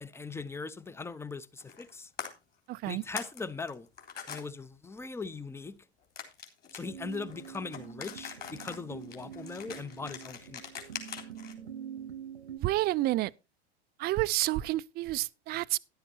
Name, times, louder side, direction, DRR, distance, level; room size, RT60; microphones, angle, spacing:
voice 1, 0.0-2.1 2.9-3.9 4.3-5.8 6.7-10.6, left 4 dB, 10° left, 0.7 m, -40 dB
sound 1, 1.6-1.9 2.2-2.3 2.8-3.4 3.7-4.4 6.2-11.5, left 7 dB, 30° left, 3.6 m, -42 dB
voice 2, 2.7-3.0 12.6-13.3 14.0-15.8, right 17 dB, 30° right, 0.4 m, -29 dB
sound 2, 6.8-12.6, right 8 dB, 85° right, 1.1 m, -45 dB
13.0 x 11.0 x 2.8 m
hypercardioid pair, 95°, 32 cm